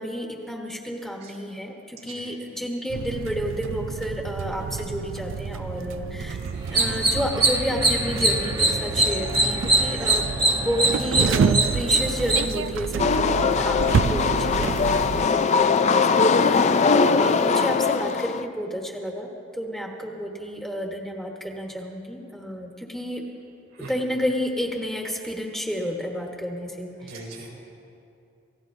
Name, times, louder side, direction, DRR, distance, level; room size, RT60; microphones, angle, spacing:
voice 1, 0.0-6.4 6.6-10.3 10.6-23.2 23.8-27.3, equal, ahead, -1 dB, 1.2 m, -31 dB
sound 1, 2.9-15.3, right 6 dB, 65° right, 0.3 m, -29 dB
voice 2, 6.2-6.6 13.8-14.0 23.8-23.9 27.0-27.6, right 2 dB, 85° right, -4 dB, 3.9 m, -40 dB
sound 2, 6.6-12.5, right 2 dB, 20° right, 1.0 m, -23 dB
sound 3, 13.0-18.4, left 5 dB, 35° left, 0.3 m, -21 dB
28.5 x 16.0 x 2.7 m, 2.7 s
head